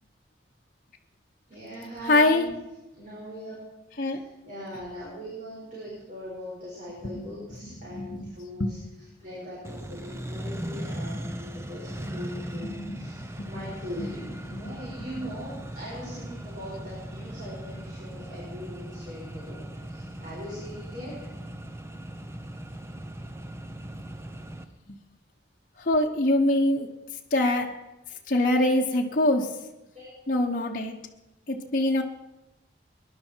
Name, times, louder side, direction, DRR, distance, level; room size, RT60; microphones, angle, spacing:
voice 1, 1.5-2.5 2.9-3.5 4.0-8.8 9.2-21.3 29.9-30.1, equal, 40° right, -7 dB, 5.1 m, -41 dB
voice 2, 2.1-2.5 4.0-4.2 7.0-7.2 7.9-8.3 8.6-8.7 12.1-12.2 12.5-13.0 13.4-13.5 14.0-14.1 14.5-14.8 24.9-25.0 25.8-27.0 27.3-27.8 28.3-29.6 30.3-31.0 31.5-32.0, left 1 dB, 45° left, 0 dB, 1.0 m, -24 dB
Accelerating revving vroom, 9.6-24.6, right 1 dB, 15° right, 0.7 m, -38 dB
21.0 x 11.0 x 4.5 m, 1.0 s
head